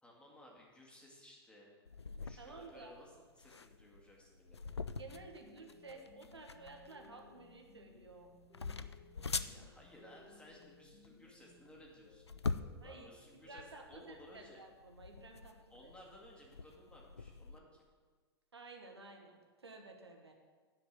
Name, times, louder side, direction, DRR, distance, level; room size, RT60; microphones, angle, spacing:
voice 1, 0.0-1.7 2.2-4.7 9.5-12.3 12.8-14.6 15.7-17.9, left 1 dB, 10° left, -2 dB, 2.3 m, -58 dB
sound 1, 1.9-17.6, left 4 dB, 90° left, 0.4 m, -45 dB
voice 2, 2.4-2.9 5.0-8.3 12.8-13.1 13.4-15.5 15.8-15.9 18.5-20.3, right 3 dB, 80° right, 2 dB, 1.4 m, -53 dB
sound 2, 5.1-14.4, left 4 dB, 40° left, 2.6 m, -63 dB
9.3 x 5.2 x 8.0 m, 1.5 s
figure-of-eight pair, 100°, 13 cm